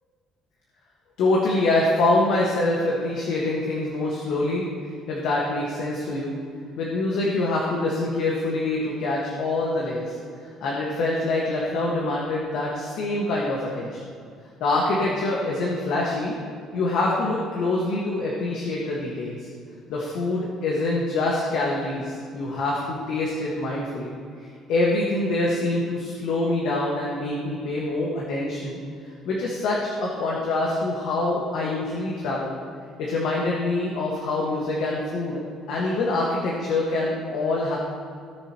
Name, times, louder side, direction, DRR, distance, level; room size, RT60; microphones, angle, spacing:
voice 1, 1.2-4.7 5.1-6.3 6.8-10.1 10.6-14.0 14.6-16.4 16.7-19.5 19.9-24.1 24.7-28.8 29.2-32.5 33.0-35.4 35.7-37.8, left 2 dB, 65° left, -3 dB, 1.6 m, -25 dB
17.5 x 6.9 x 3.0 m, 2.3 s
cardioid pair, 175°, 0 cm